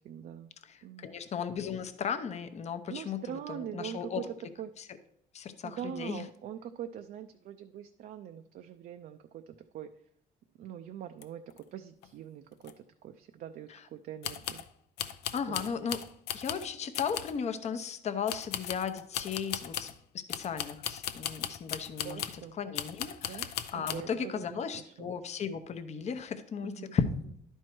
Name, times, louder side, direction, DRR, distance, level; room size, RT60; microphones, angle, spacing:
voice 1, 0.0-0.5 0.8-1.1 2.9-4.2 4.6-4.7 5.6-9.9 10.6-14.6 15.3-15.7 22.0-22.6 23.2-23.5 23.7-25.1 26.6-27.0, right 10 dB, 60° right, 7 dB, 0.5 m, -43 dB
voice 2, 0.6-4.2 4.8-4.9 5.3-6.2 13.7-13.8 15.3-16.0 16.3-19.9 20.1-22.2 22.6-27.0, left 7 dB, 40° left, 9 dB, 0.7 m, -36 dB
sound 1, 11.2-11.3 11.5-11.6 12.0-12.1 12.6-12.7 14.2-14.7 15.0-16.7 16.9-17.4 18.3-20.0 20.3-22.4 22.7-24.0, left 10 dB, 75° left, 0.6 m, -37 dB
11.0 x 4.5 x 4.5 m, 0.72 s
cardioid pair, 110°, 17 cm